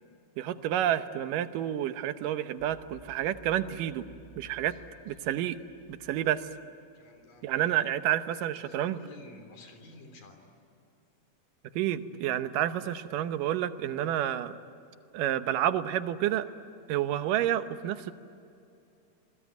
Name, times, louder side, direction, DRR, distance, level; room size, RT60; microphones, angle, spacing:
voice 1, 0.4-4.0 4.4-4.8 5.1-5.6 5.9-6.4 7.4-9.0 11.8-14.5 15.1-16.5 16.9-18.1, right 12 dB, 90° right, 10 dB, 2.6 m, -29 dB
sound 1, 2.6-7.4, equal, 20° right, 7.0 m, -56 dB
voice 2, 6.9-7.9 8.6-10.4 12.5-12.8, left 3 dB, 85° left, 5 dB, 5.0 m, -53 dB
27.0 x 21.5 x 9.4 m, 2.6 s
omnidirectional pair, 3.7 m